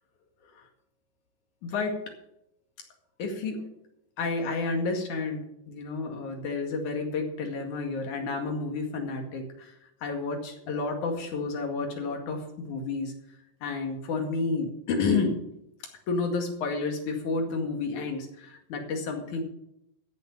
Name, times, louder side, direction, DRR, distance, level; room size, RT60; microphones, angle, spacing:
voice 1, 1.6-2.0 3.2-3.7 4.2-9.7 10.0-13.1 13.6-15.4 16.1-19.4, left 4 dB, 85° left, 3 dB, 3.6 m, -30 dB
14.5 x 7.2 x 7.2 m, 0.79 s
omnidirectional pair, 3.4 m